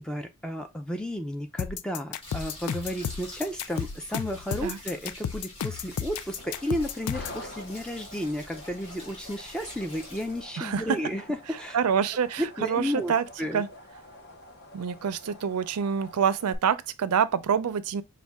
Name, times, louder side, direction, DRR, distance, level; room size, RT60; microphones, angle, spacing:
voice 1, 0.0-11.8 12.4-13.1 13.4-13.6, equal, 5° left, 0.4 m, -33 dB
sound 1, 1.6-7.4, left 8 dB, 85° left, 0.4 m, -33 dB
sound 2, 2.2-10.4, left 1 dB, 25° left, 1.8 m, -46 dB
sound 3, 5.9-16.6, left 1 dB, 45° left, 0.8 m, -47 dB
voice 2, 10.6-11.0 11.7-13.2 13.5-13.7 14.7-18.0, right 7 dB, 90° right, 0.4 m, -26 dB
5.2 x 2.2 x 3.5 m
head